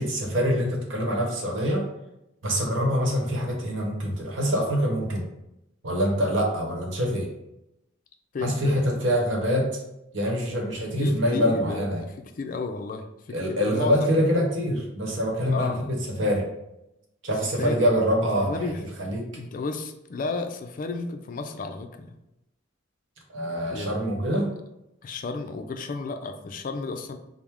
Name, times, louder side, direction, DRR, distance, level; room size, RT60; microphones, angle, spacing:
voice 1, 0.0-1.8 2.4-5.2 5.8-7.3 8.4-9.8 10.1-12.0 13.3-15.7 16.2-16.5 17.2-18.6 19.0-19.2 23.3-24.5, equal, 70° right, 0 dB, 1.0 m, -25 dB
voice 2, 8.3-9.0 11.0-14.2 15.4-15.9 17.6-17.9 18.4-18.8 19.3-22.2 23.6-24.4 25.0-27.2, left 3 dB, 45° left, 6 dB, 0.3 m, -33 dB
4.5 x 2.0 x 3.5 m, 0.88 s
head